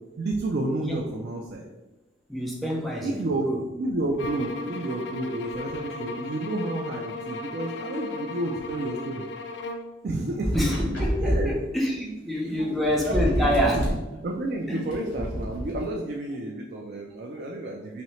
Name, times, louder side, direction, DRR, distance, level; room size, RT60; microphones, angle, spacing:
voice 1, 0.2-1.7 3.0-3.5 3.8-9.2 10.0-10.5 11.2-11.6 12.0-12.2 12.4-12.8 13.1-13.8 14.2-18.0, right 2 dB, 55° right, 0 dB, 0.4 m, -31 dB
voice 2, 2.3-3.6 10.5-13.8 14.7-14.9, equal, ahead, -3 dB, 0.6 m, -27 dB
sound 1, 4.2-9.9, left 2 dB, 65° left, 0.3 m, -36 dB
sound 2, 10.4-11.5 12.6-12.7 12.8-14.0 14.9-15.8, equal, 85° left, 1.4 m, -27 dB
4.1 x 2.8 x 3.1 m, 1.1 s
head